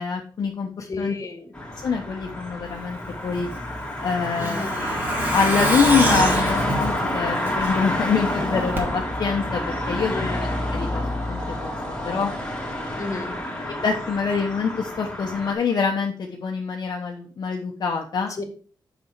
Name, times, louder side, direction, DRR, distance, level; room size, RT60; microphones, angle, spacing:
voice 1, 0.0-1.1 1.8-3.5 4.0-11.0 11.3-12.3 13.6-18.3, left 5 dB, 55° left, 1 dB, 1.0 m, -25 dB
voice 2, 0.8-1.5 4.4-4.8 10.1-10.5 13.0-13.3 18.4-18.5, left 3 dB, 40° left, 6 dB, 1.7 m, -32 dB
sound 1, 1.5-15.5, left 1 dB, 15° left, 2.5 m, -28 dB
Truck, 3.4-8.0 8.3-8.4 8.8-8.9, right 1 dB, 25° right, 2.4 m, -27 dB
6.8 x 6.3 x 4.6 m, 0.42 s
wide cardioid pair, 130°, 8 cm